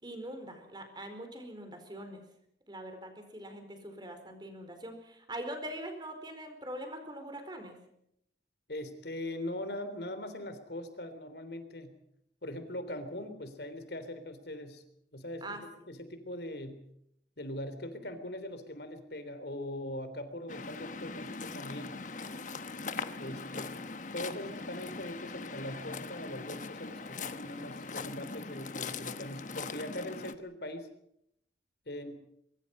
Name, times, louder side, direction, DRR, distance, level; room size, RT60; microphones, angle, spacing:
voice 1, 0.0-2.2 2.7-7.8 15.4-15.6, right 1 dB, 25° right, 6 dB, 4.5 m, -43 dB
voice 2, 8.7-11.9 12.4-14.8 15.1-15.6 15.9-16.8 17.4-21.9 23.1-23.8 24.1-30.9 31.9-32.2, left 1 dB, 65° left, 10 dB, 3.4 m, -41 dB
Waves surf, 20.5-30.3, left 4 dB, 45° left, 1.2 m, -41 dB
24.0 x 23.5 x 5.5 m, 0.74 s
head